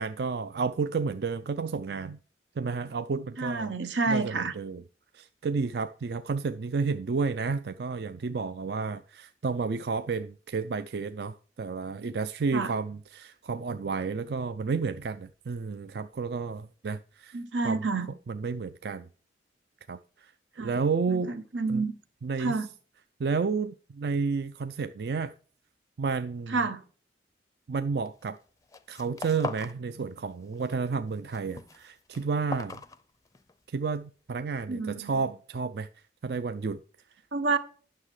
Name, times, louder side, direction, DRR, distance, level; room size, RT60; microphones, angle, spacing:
voice 1, 0.0-2.2 2.6-3.7 4.1-4.8 5.1-17.4 17.6-17.8 18.3-19.1 19.9-20.3 20.6-21.3 21.7-21.8 22.2-22.6 23.2-25.3 26.0-26.6 27.7-28.4 28.9-32.8 33.7-35.9 36.2-36.8, right 4 dB, 60° right, 0.4 m, -31 dB
voice 2, 3.4-4.5 12.5-12.7 17.3-18.1 20.6-20.8 21.1-21.9 22.4-22.7 26.5-26.8 34.7-35.2 37.3-37.6, right 4 dB, 85° right, 1.1 m, -29 dB
sound 1, 28.1-28.4 28.6-29.8 30.1-30.8 31.1-33.6, left 3 dB, 20° left, 0.5 m, -40 dB
9.6 x 6.5 x 4.8 m
head